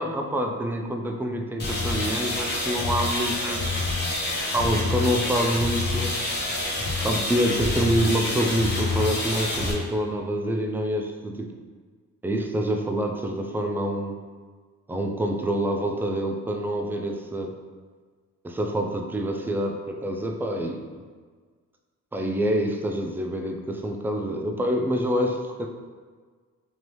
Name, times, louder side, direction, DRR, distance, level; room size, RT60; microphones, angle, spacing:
voice 1, 0.0-3.8 4.5-6.3 7.0-11.5 12.2-14.2 14.9-17.5 18.4-20.8 22.1-25.7, right 1 dB, 5° right, 2 dB, 0.3 m, -26 dB
sound 1, 1.6-9.7, left 2 dB, 35° left, 1.0 m, -27 dB
3.2 x 2.6 x 3.0 m, 1.5 s
cardioid pair, 90°, 30 cm